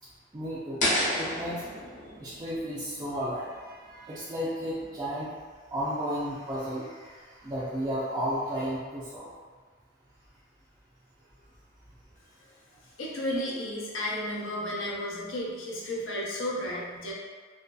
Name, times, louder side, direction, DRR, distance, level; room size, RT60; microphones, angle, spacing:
voice 1, 0.3-0.8 1.1-1.6 2.2-5.3 5.7-9.3, equal, 20° right, -11 dB, 0.4 m, -33 dB
sound 1, 0.8-3.8, left 1 dB, 40° left, 0.7 m, -31 dB
voice 2, 13.0-17.1, left 1 dB, 85° left, -5 dB, 0.6 m, -33 dB
2.6 x 2.2 x 2.3 m, 1.5 s
head